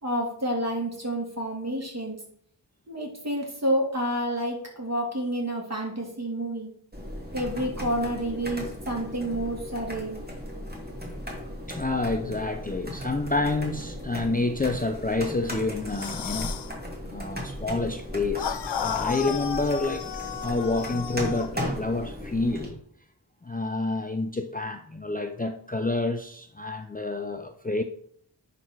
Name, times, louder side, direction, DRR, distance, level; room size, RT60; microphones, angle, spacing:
voice 1, 0.0-2.2 2.9-6.7 7.3-10.2, right 1 dB, 35° right, 2.7 m, -29 dB
sound 1, 6.9-22.7, equal, 20° right, 2.3 m, -37 dB
voice 2, 11.7-16.6 17.0-20.1 20.4-22.8 23.4-27.8, left 2 dB, 20° left, 0.6 m, -28 dB
sound 2, 15.9-16.7 18.4-21.5, left 8 dB, 75° left, 0.6 m, -33 dB
10.5 x 4.2 x 4.6 m
wide cardioid pair, 50°, 43 cm